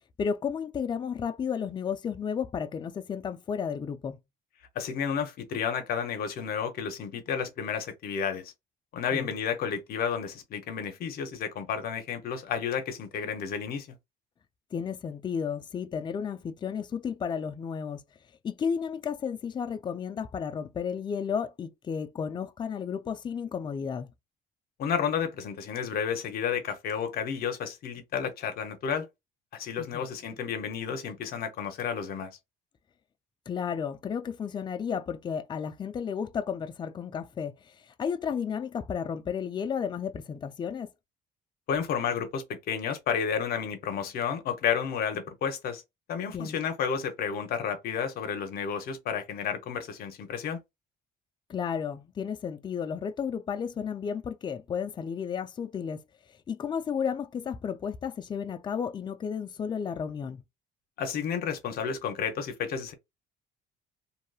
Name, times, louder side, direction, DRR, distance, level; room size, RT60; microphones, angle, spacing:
voice 1, 0.2-4.2 9.1-9.3 14.7-18.0 18.4-24.1 29.8-30.0 33.5-40.9 46.3-46.6 51.5-56.0 56.5-60.4, left 7 dB, 25° left, 0.4 m, -33 dB
voice 2, 4.8-8.5 8.9-13.9 24.8-29.1 29.5-32.3 41.7-45.8 46.1-50.6 61.0-62.9, left 7 dB, 65° left, 0.8 m, -31 dB
2.9 x 2.6 x 2.3 m
cardioid pair, 110°, 17 cm